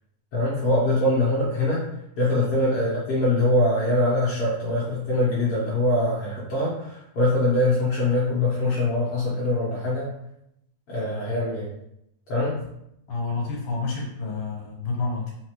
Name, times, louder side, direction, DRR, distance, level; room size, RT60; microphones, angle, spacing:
voice 1, 0.3-1.8 2.2-10.1 10.9-11.7 12.3-12.6, left 1 dB, 60° left, -8 dB, 1.9 m, -23 dB
voice 2, 13.1-15.3, left 3 dB, 75° left, -2 dB, 2.4 m, -29 dB
5.7 x 2.8 x 3.0 m, 0.78 s
omnidirectional pair, 3.5 m